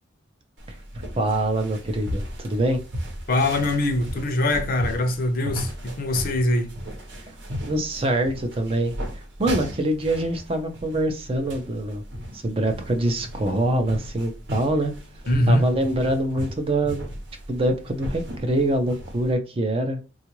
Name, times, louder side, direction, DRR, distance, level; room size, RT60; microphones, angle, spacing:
sound 1, 0.6-19.3, equal, 65° right, 0.9 m, -36 dB
voice 1, 1.1-2.8 7.3-7.4 7.6-12.0 12.3-14.9 15.5-17.1 17.5-20.0, right 1 dB, 30° right, 0.5 m, -24 dB
voice 2, 3.3-6.7 15.3-15.7, left 1 dB, 50° left, 0.6 m, -23 dB
3.6 x 2.4 x 2.9 m
head